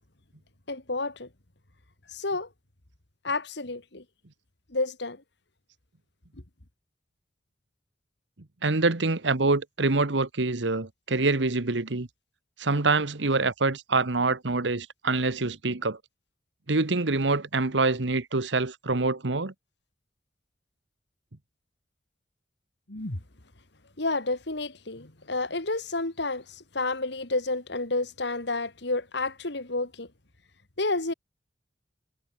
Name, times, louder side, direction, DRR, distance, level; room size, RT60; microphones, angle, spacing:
voice 1, 0.7-1.3 2.1-2.5 3.2-4.0 4.7-5.2 22.9-23.2 24.0-30.1 30.8-31.1, left 2 dB, 70° left, 2.6 m, -30 dB
voice 2, 8.6-12.1 12.6-16.0 16.7-19.5, right 3 dB, 75° right, 1.4 m, -25 dB
head